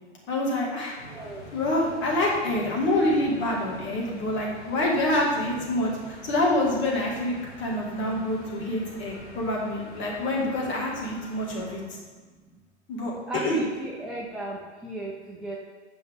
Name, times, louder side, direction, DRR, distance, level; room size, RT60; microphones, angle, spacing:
voice 1, 0.3-0.9 1.5-11.8 12.9-13.1 13.4-13.6, left 1 dB, 35° left, -3 dB, 2.1 m, -26 dB
sound 1, 1.0-11.8, equal, 85° left, 1.7 m, -45 dB
voice 2, 1.1-1.4 13.3-15.6, right 1 dB, ahead, -3 dB, 0.4 m, -34 dB
7.7 x 5.3 x 3.6 m, 1.4 s
hypercardioid pair, 110°, 35 cm